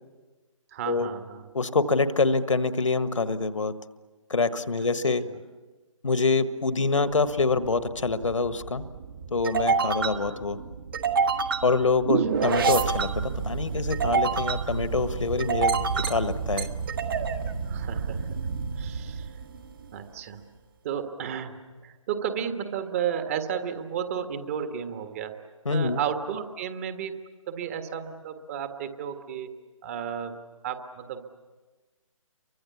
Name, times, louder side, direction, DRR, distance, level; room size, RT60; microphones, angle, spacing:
voice 1, 0.7-1.5 4.8-4.9 5.3-5.4 9.9-10.0 12.2-12.4 17.6-18.3 18.8-19.4 19.9-20.4 20.8-21.5 21.8-25.3 25.7-27.1 27.5-29.5 29.8-30.3 30.6-31.2, right 8 dB, 25° right, 8 dB, 1.6 m, -33 dB
voice 2, 1.5-3.7 4.3-5.2 6.0-8.9 9.3-10.6 11.6-16.7 25.6-26.0, left 3 dB, 65° left, 12 dB, 1.5 m, -25 dB
sound 1, 7.3-19.9, right 5 dB, 40° right, 1.6 m, -28 dB
30.0 x 24.0 x 7.1 m, 1.3 s
figure-of-eight pair, 145°, 18 cm